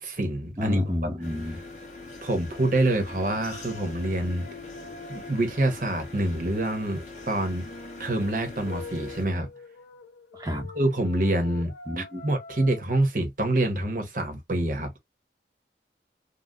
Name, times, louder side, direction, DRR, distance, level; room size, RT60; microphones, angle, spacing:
voice 1, 0.0-0.8 2.2-4.5 5.1-7.7 8.0-9.5 10.7-15.0, right 1 dB, 50° right, 1.1 m, -26 dB
voice 2, 0.6-1.6 10.3-10.7 11.9-12.2, left 1 dB, 20° right, 0.8 m, -29 dB
sound 1, 1.2-9.3, left 3 dB, 45° left, 1.5 m, -43 dB
sound 2, 3.5-5.8 7.6-12.8, left 3 dB, 85° left, 1.7 m, -45 dB
3.9 x 2.3 x 2.3 m
head